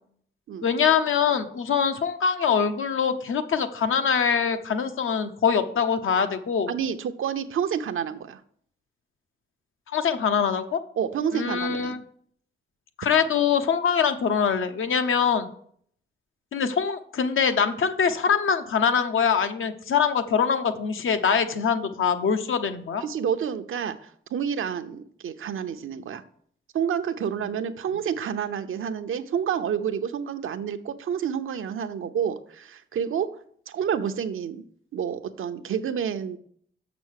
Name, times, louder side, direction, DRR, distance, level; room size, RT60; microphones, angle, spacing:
voice 1, 0.6-6.7 9.9-10.8 11.3-12.0 13.0-15.5 16.5-23.0, left 6 dB, 80° left, 8 dB, 0.8 m, -23 dB
voice 2, 6.7-8.4 11.0-12.0 23.0-26.2 26.7-34.6 34.9-36.4, right 8 dB, 85° right, 9 dB, 0.7 m, -29 dB
6.6 x 6.1 x 6.4 m, 0.62 s
wide cardioid pair, 100°, 21 cm